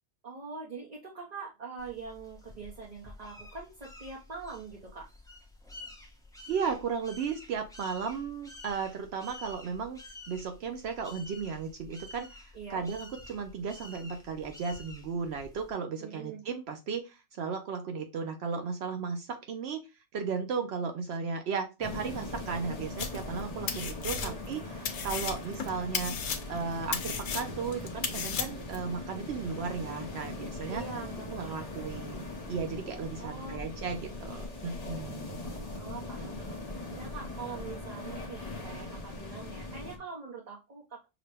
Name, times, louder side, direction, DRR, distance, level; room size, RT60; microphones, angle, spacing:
voice 1, 0.2-5.0 12.5-12.9 16.0-16.4 24.2-24.7 30.7-31.8 33.2-34.5 35.7-41.0, right 5 dB, 40° right, -3 dB, 0.9 m, -44 dB
sound 1, 1.8-15.7, left 2 dB, 5° left, 0.8 m, -50 dB
voice 2, 6.5-10.0 10.3-19.8 20.1-26.1 26.5-30.8 31.3-35.4, right 5 dB, 70° right, 5 dB, 0.8 m, -35 dB
sound 2, 21.8-40.0, left 2 dB, 40° left, 0.8 m, -40 dB
sound 3, 23.0-23.4 23.7-24.6 24.9-28.8, left 6 dB, 80° left, 1.0 m, -34 dB
5.8 x 2.2 x 3.3 m, 0.27 s
omnidirectional pair, 1.2 m